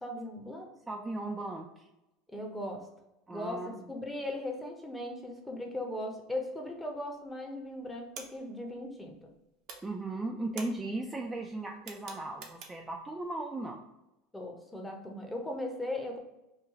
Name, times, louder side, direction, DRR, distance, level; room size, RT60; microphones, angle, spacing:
voice 1, 0.0-0.7 2.3-2.9 3.3-9.2 14.3-16.2, left 1 dB, 10° left, 2 dB, 0.7 m, -38 dB
voice 2, 0.9-1.9 3.3-3.9 9.8-13.8, right 2 dB, 15° right, 1 dB, 0.3 m, -37 dB
sound 1, 6.9-7.4 7.6-9.4 9.6-13.0, right 5 dB, 55° right, 0.6 m, -48 dB
3.1 x 2.3 x 3.5 m, 0.94 s
supercardioid pair, 105°, 0 cm